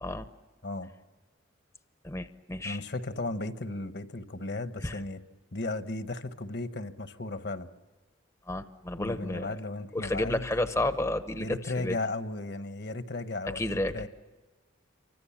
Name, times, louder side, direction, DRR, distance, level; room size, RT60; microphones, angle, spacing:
voice 1, 2.0-2.8 4.8-5.0 8.5-9.6 9.9-12.0 13.5-14.1, left 1 dB, 15° left, 9 dB, 0.8 m, -31 dB
voice 2, 2.6-5.2 5.5-7.7 9.0-10.5 11.4-14.1, left 2 dB, 55° left, 10 dB, 1.2 m, -35 dB
28.0 x 25.0 x 7.3 m, 1.3 s
head